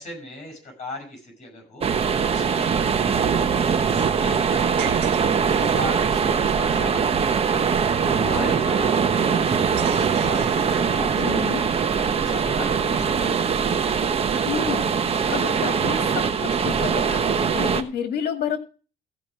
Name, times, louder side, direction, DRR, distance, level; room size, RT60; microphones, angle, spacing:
voice 1, 0.0-5.2 5.4-7.8 8.2-11.2 12.1-13.6, left 2 dB, 45° left, 1 dB, 7.5 m, -38 dB
sound 1, 1.8-17.8, right 6 dB, 35° right, 1.1 m, -22 dB
sound 2, 4.8-6.0 9.8-11.4, right 10 dB, 80° right, 1.6 m, -35 dB
voice 2, 8.2-8.6 11.2-11.7 14.5-18.6, left 8 dB, 70° left, 6 dB, 2.1 m, -30 dB
15.5 x 5.2 x 6.4 m, 0.37 s
cardioid pair, 110°, 17 cm